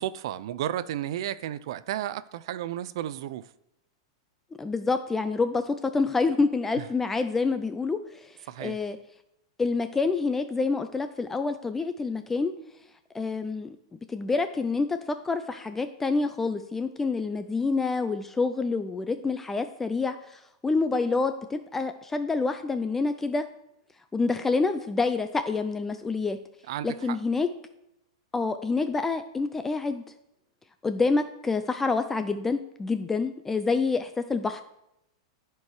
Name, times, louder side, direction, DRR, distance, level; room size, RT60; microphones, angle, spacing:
voice 1, 0.0-3.5 6.8-6.9 8.5-8.8 26.7-27.2, right 12 dB, 60° right, 0.4 m, -33 dB
voice 2, 4.6-9.0 9.6-12.5 13.1-13.8 14.1-23.4 24.1-26.4 26.8-27.5 28.3-30.0 30.8-34.6, left 4 dB, 10° left, 0.4 m, -27 dB
13.5 x 4.6 x 4.8 m
supercardioid pair, 150°, 3 cm